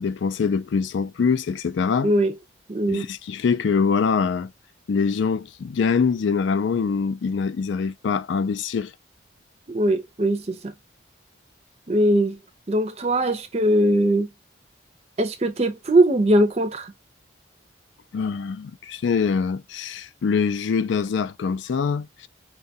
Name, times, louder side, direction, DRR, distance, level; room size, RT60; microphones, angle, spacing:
voice 1, 0.0-2.1 2.9-4.5 4.9-8.9 18.1-22.3, left 5 dB, 70° left, 0.4 m, -24 dB
voice 2, 2.0-2.3 2.7-3.1 9.7-10.7 11.9-12.4 12.7-14.3 15.2-16.9, right 1 dB, 35° right, 0.5 m, -20 dB
4.7 x 2.3 x 2.7 m
head